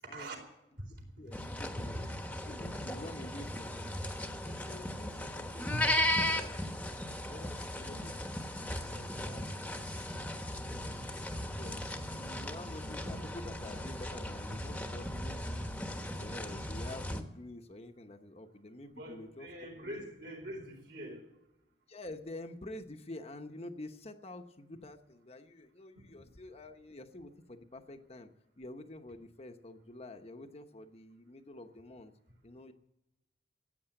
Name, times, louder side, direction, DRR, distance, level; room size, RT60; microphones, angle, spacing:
voice 1, 1.2-1.9 2.5-3.9 4.4-6.8 7.2-10.3 10.8-11.1 11.5-15.7 16.2-19.5 19.9-20.0 21.9-28.3 28.6-32.1 32.4-32.7, left 1 dB, 35° left, 5 dB, 1.0 m, -48 dB
sound 1, 1.3-17.2, left 1 dB, 10° left, 1.1 m, -37 dB
voice 2, 18.9-21.2 25.9-26.1, right 1 dB, 60° right, 2 dB, 4.2 m, -43 dB
15.0 x 8.9 x 8.9 m, 0.91 s
head